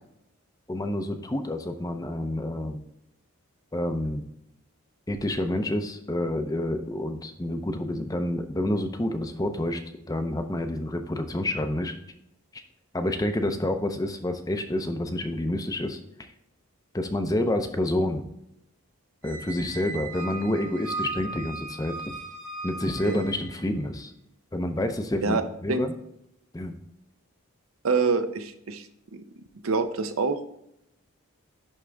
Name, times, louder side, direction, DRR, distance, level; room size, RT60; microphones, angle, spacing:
voice 1, 0.7-2.8 3.7-4.2 5.1-9.8 10.1-11.9 12.5-12.6 12.9-16.3 16.9-18.3 19.2-22.2 22.6-24.1 24.5-25.9 26.5-26.7, left 1 dB, 15° left, 7 dB, 0.5 m, -28 dB
Squeak, 19.2-23.7, right 3 dB, 90° right, 2.1 m, -37 dB
voice 2, 27.8-29.2 29.6-30.4, right 4 dB, 70° right, 9 dB, 0.6 m, -26 dB
11.0 x 3.7 x 3.4 m, 0.79 s
head